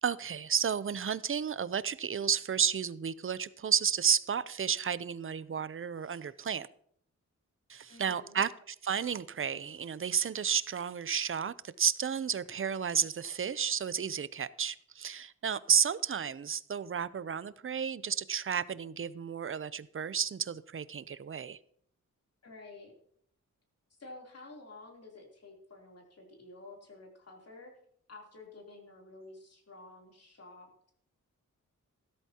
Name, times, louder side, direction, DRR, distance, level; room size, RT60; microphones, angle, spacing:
voice 1, 0.0-6.7 7.7-21.6, right 7 dB, 40° right, 0.5 m, -32 dB
voice 2, 7.9-8.4 22.4-22.9 23.9-27.7 28.1-30.9, left 2 dB, 50° left, 3.3 m, -51 dB
15.0 x 13.0 x 2.9 m
wide cardioid pair, 130°, 32 cm